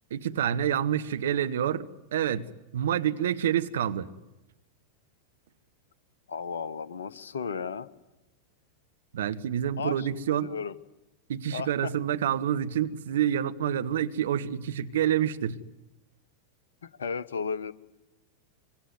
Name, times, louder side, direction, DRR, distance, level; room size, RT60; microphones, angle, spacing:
voice 1, 0.1-4.1 9.1-10.5 11.3-15.6, right 10 dB, 60° right, 1.2 m, -28 dB
voice 2, 6.3-7.9 9.8-10.1 10.4-10.7 11.5-11.9 16.8-17.7, left 6 dB, 65° left, 1.1 m, -34 dB
25.0 x 24.0 x 9.6 m
figure-of-eight pair, 90°, 0 cm